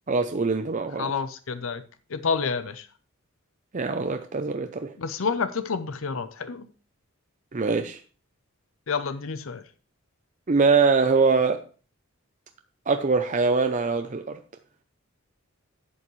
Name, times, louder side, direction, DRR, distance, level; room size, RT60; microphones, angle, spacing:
voice 1, 0.1-1.1 3.7-4.9 7.5-8.0 10.5-11.6 12.9-14.4, right 4 dB, 35° right, 0.6 m, -23 dB
voice 2, 1.0-1.8 2.1-2.9 5.0-6.7 8.9-9.6, left 5 dB, 70° left, 0.6 m, -29 dB
11.0 x 8.1 x 3.2 m
head